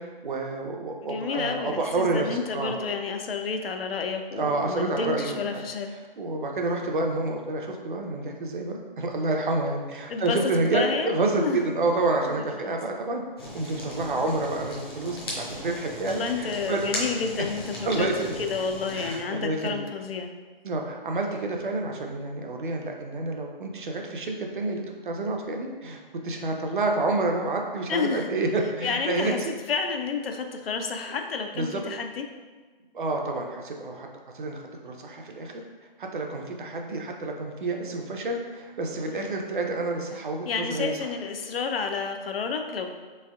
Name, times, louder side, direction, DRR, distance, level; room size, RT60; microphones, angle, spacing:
voice 1, 0.0-2.7 4.4-5.6 6.2-13.2 13.5-16.8 17.9-18.3 18.9-19.8 20.6-29.5 31.6-31.8 32.9-34.1 34.3-35.5 36.0-41.0, right 2 dB, 60° right, 2 dB, 0.5 m, -29 dB
voice 2, 1.0-5.9 10.1-11.6 12.3-12.8 16.0-18.1 18.4-20.3 27.9-28.3 28.8-29.4 29.7-32.2 39.1-39.4 40.5-42.9, left 5 dB, 80° left, 5 dB, 0.5 m, -30 dB
Fire, 13.4-19.2, equal, 25° left, 0.5 m, -37 dB
3.3 x 3.2 x 2.2 m, 1.4 s
figure-of-eight pair, 150°, 29 cm